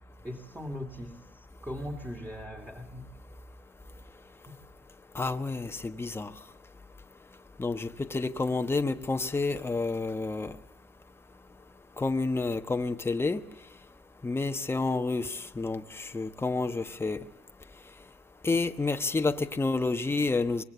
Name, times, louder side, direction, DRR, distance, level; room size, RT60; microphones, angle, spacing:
voice 1, 0.2-3.1, equal, 10° right, 2.5 m, -40 dB
voice 2, 5.1-6.3 7.6-10.5 12.0-13.4 14.2-17.2 18.4-20.6, left 3 dB, 15° left, 1.1 m, -29 dB
25.5 x 21.5 x 8.2 m
cardioid pair, 110°, 17 cm